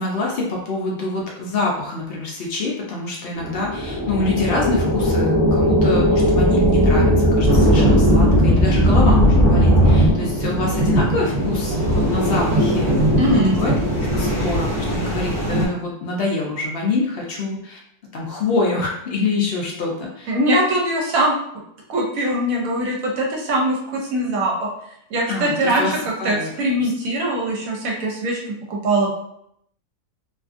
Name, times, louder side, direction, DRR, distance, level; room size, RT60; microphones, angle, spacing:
voice 1, 0.0-12.9 13.3-17.8 18.1-20.3 25.3-25.9 26.2-26.5 26.8-26.9, left 2 dB, 75° left, -2 dB, 0.5 m, -25 dB
sound 1, 3.4-10.1, equal, 15° right, 0.6 m, -17 dB
sound 2, 7.5-15.7, equal, 40° right, 0.9 m, -20 dB
voice 2, 13.2-13.6 20.3-21.3 21.9-24.7 25.1-25.8 26.2-29.1, right 1 dB, 65° right, -1 dB, 1.0 m, -21 dB
2.6 x 2.4 x 2.4 m, 0.73 s
omnidirectional pair, 1.7 m